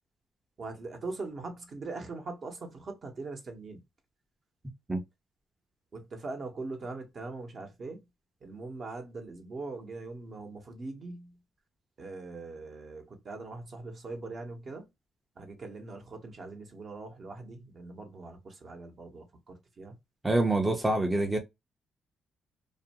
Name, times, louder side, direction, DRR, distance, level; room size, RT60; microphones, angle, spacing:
voice 1, 0.6-3.8 5.9-8.0 8.4-11.4 12.0-14.9 15.4-19.9, right 3 dB, 45° right, 0.8 m, -41 dB
voice 2, 20.2-21.4, right 2 dB, 15° right, 0.5 m, -26 dB
2.5 x 2.2 x 2.7 m
cardioid pair, 90°, 0 cm